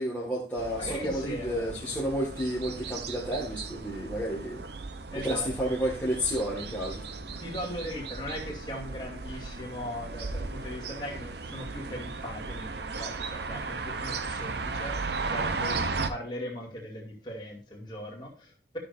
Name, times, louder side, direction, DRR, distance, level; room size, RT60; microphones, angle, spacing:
voice 1, 0.0-4.6 5.2-7.0, equal, 10° left, 1.9 m, -31 dB
sound 1, 0.6-16.1, right 4 dB, 60° right, 0.8 m, -36 dB
voice 2, 0.8-1.8 5.1-5.8 7.4-18.8, equal, 25° left, 2.5 m, -39 dB
13.0 x 6.8 x 2.6 m
head